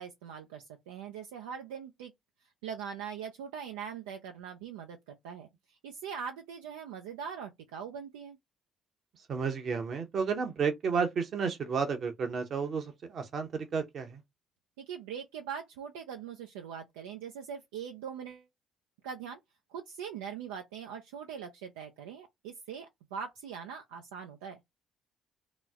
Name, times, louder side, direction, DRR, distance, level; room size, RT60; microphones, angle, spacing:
voice 1, 0.0-2.1 2.6-5.5 5.8-8.4 14.8-18.5 19.0-19.4 19.7-24.6, right 7 dB, 85° right, 0.4 m, -42 dB
voice 2, 9.3-14.2, right 5 dB, 55° right, 0.9 m, -32 dB
3.0 x 2.0 x 3.5 m
hypercardioid pair, 55°, 0 cm